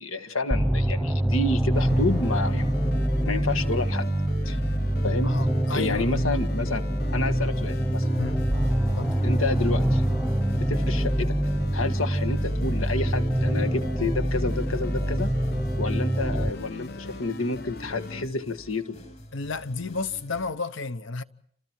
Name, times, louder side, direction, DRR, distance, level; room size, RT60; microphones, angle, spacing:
voice 1, 0.0-4.1 4.5-4.6 5.0-5.3 5.7-6.8 7.1-8.1 9.2-10.0 10.5-11.3 11.7-15.3 15.8-19.0, left 3 dB, 85° left, 1.8 m, -30 dB
sound 1, 0.5-16.5, right 1 dB, ahead, 1.0 m, -25 dB
sound 2, 1.7-18.3, left 2 dB, 50° left, 0.9 m, -40 dB
voice 2, 5.2-6.4 8.2-8.4 9.0-9.1 19.3-21.2, left 3 dB, 70° left, 1.1 m, -32 dB
sound 3, 7.5-20.5, equal, 35° left, 7.8 m, -48 dB
29.5 x 27.5 x 4.7 m
head